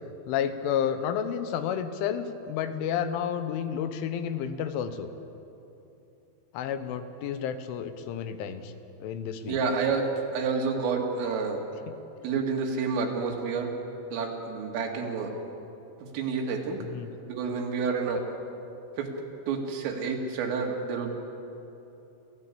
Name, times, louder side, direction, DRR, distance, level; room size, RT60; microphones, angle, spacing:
voice 1, 0.3-5.1 6.5-8.7 9.0-9.6 11.9-12.0 16.8-17.1, left 8 dB, 80° left, 10 dB, 3.4 m, -31 dB
voice 2, 9.5-11.6 12.2-13.7 14.1-15.3 16.1-16.8 17.3-18.2 19.0-19.1 19.5-21.1, right 5 dB, 90° right, 1 dB, 4.8 m, -29 dB
28.0 x 15.0 x 8.5 m, 3.0 s
omnidirectional pair, 5.7 m